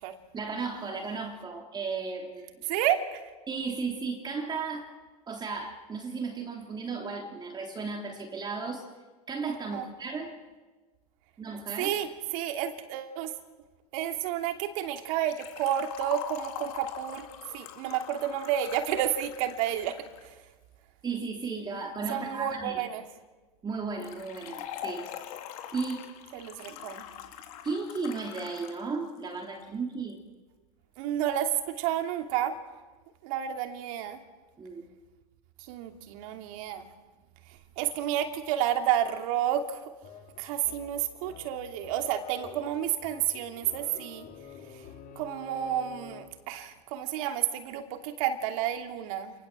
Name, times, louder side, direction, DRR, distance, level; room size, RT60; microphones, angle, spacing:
voice 1, 0.3-2.5 3.5-4.9 5.3-8.9 9.3-10.3 11.4-11.9 21.0-22.8 23.6-25.1 25.7-26.0 27.6-30.2 34.6-34.8, right 4 dB, 20° right, 2 dB, 3.2 m, -35 dB
voice 2, 2.7-3.2 9.7-9.9 11.8-13.3 13.9-17.3 17.5-20.0 20.2-20.4 22.1-23.0 26.3-27.0 31.0-32.5 33.2-34.2 35.6-36.9 37.8-39.8 40.4-44.3 44.7-44.8 45.1-49.3, right 10 dB, 65° right, 5 dB, 2.9 m, -30 dB
Liquid, 15.3-20.3 24.0-28.8 29.1-29.2 30.1-30.2, left 10 dB, 70° left, 3.7 m, -43 dB
sound 1, 40.0-46.5, left 7 dB, 45° left, 3.8 m, -48 dB
28.0 x 20.0 x 7.6 m, 1.3 s
hypercardioid pair, 110°, 19 cm